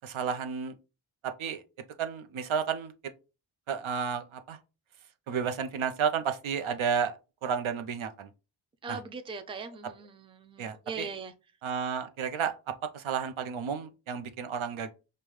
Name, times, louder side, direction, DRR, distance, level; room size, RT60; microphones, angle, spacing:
voice 1, 0.0-0.8 1.4-1.6 2.0-2.9 3.7-4.6 5.3-7.2 7.4-8.3 8.9-9.0 10.6-11.1 11.6-12.6 12.9-14.9, right 7 dB, 85° right, 0.6 m, -32 dB
voice 2, 8.8-11.3, right 4 dB, 15° right, 0.3 m, -40 dB
5.2 x 2.2 x 3.1 m
wide cardioid pair, 120°, 47 cm